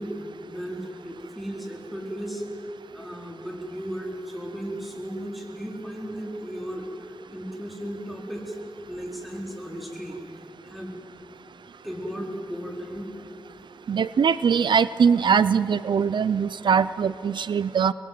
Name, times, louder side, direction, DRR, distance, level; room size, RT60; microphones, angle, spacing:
voice 1, 0.0-2.4 2.9-8.6 8.9-10.2 10.6-11.0 11.8-13.1, equal, ahead, 0 dB, 4.5 m, -35 dB
voice 2, 13.9-17.9, right 6 dB, 80° right, 16 dB, 0.5 m, -21 dB
24.5 x 22.0 x 7.8 m, 2.7 s
wide cardioid pair, 95°, 8 cm